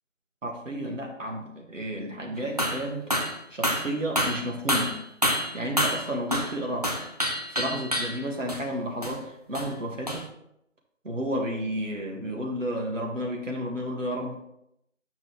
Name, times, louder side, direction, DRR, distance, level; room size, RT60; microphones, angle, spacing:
voice 1, 0.4-3.0 3.5-5.0 5.5-6.9 7.5-10.3 11.0-14.3, equal, 75° right, 0 dB, 2.1 m, -32 dB
sound 1, 2.6-2.9 3.1-3.4 3.6-6.6 6.8-8.2 8.5-8.6 9.0-9.2 9.5-9.7 10.1-10.2, equal, 30° right, 0.6 m, -27 dB
7.5 x 5.9 x 3.5 m, 0.79 s
figure-of-eight pair, 170°, 38 cm